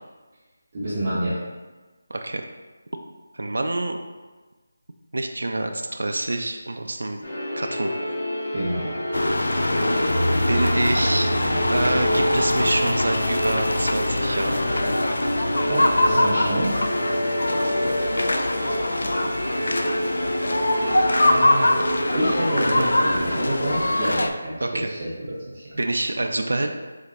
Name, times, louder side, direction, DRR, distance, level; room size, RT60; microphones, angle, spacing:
voice 1, 0.7-1.4 8.5-9.0 15.7-16.8 20.8-20.9 21.1-24.5 24.9-25.8, right 1 dB, 20° right, -11 dB, 0.7 m, -27 dB
voice 2, 2.1-2.5 3.3-4.0 5.1-7.2 7.6-8.2 10.5-11.3 11.7-14.6 24.6-24.9 25.8-26.7, right 2 dB, 70° right, 4 dB, 0.4 m, -26 dB
sound 1, 7.2-23.6, equal, 30° left, 1.1 m, -28 dB
sound 2, 9.1-24.3, left 1 dB, 65° left, 0.3 m, -23 dB
3.9 x 2.8 x 3.5 m, 1.3 s
figure-of-eight pair, 180°, 0 cm